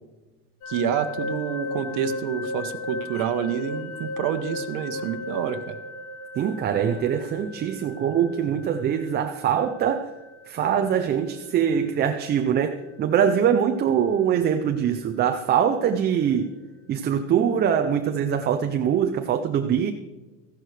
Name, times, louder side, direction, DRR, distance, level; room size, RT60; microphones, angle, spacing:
sound 1, 0.6-15.5, left 2 dB, 45° left, 1.5 m, -37 dB
voice 1, 0.7-5.8, right 9 dB, 60° right, 1.0 m, -28 dB
voice 2, 6.4-10.1 10.5-16.5 16.9-19.9, right 8 dB, 25° right, 0.5 m, -23 dB
14.0 x 11.0 x 3.3 m
cardioid pair, 150°, 37 cm